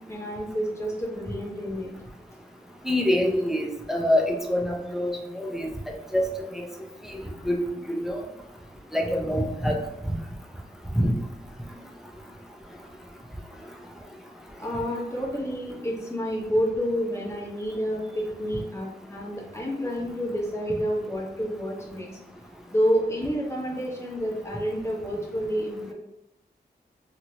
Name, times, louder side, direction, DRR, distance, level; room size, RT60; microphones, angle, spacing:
voice 1, 0.1-1.9 14.6-22.1 22.7-25.9, equal, 15° left, -3 dB, 1.0 m, -29 dB
voice 2, 2.8-5.7 6.1-6.6 7.1-7.2 7.5-7.6 7.9-8.2 8.9-9.8 11.0-11.1, left 1 dB, ahead, 0 dB, 0.5 m, -25 dB
2.9 x 2.8 x 2.7 m, 0.85 s
wide cardioid pair, 65°, 17 cm